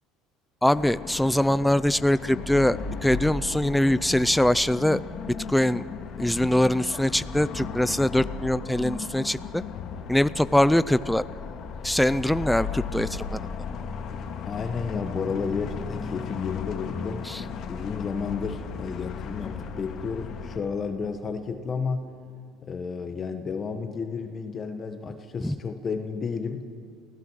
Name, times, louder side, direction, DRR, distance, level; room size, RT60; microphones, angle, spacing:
voice 1, 0.6-5.0 5.5-5.8 6.2-9.6 10.1-11.2 11.8-13.5 17.3-17.4 25.4-25.5, left 1 dB, 5° left, 15 dB, 0.4 m, -23 dB
sound 1, 0.7-20.6, left 6 dB, 55° left, 1.9 m, -36 dB
voice 2, 14.4-17.3 17.7-22.1 22.6-26.6, left 5 dB, 35° left, 7 dB, 1.3 m, -32 dB
28.0 x 16.0 x 6.3 m, 2.4 s
supercardioid pair, 110°, 0 cm